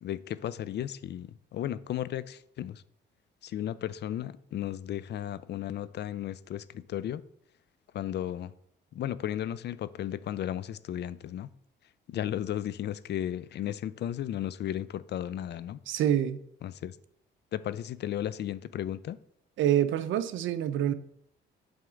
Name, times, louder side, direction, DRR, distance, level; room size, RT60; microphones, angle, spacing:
voice 1, 0.0-2.8 3.4-7.2 7.9-8.5 8.9-11.5 12.1-15.8 16.6-17.0 17.5-19.2, left 11 dB, 60° left, 17 dB, 0.5 m, -34 dB
voice 2, 15.9-16.4 19.6-20.9, right 11 dB, 80° right, 14 dB, 0.6 m, -26 dB
7.7 x 3.5 x 6.2 m, 0.70 s
cardioid pair, 90°, 20 cm